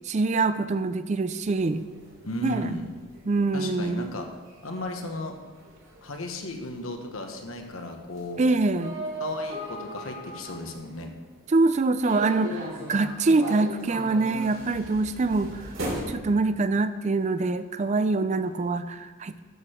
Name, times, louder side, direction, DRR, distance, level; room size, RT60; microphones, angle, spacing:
voice 1, 0.1-1.8 2.4-2.8 3.3-4.1 8.4-8.9 11.5-15.6 16.1-19.4, right 3 dB, 35° right, 12 dB, 0.4 m, -24 dB
sound 1, 1.5-11.4 12.0-16.0, equal, 75° right, 2.9 m, -38 dB
voice 2, 2.2-2.9 3.5-4.3 4.6-5.3 6.0-8.4 9.2-11.1, left 2 dB, 90° left, 4 dB, 1.3 m, -35 dB
12.0 x 6.7 x 4.5 m, 1.4 s
head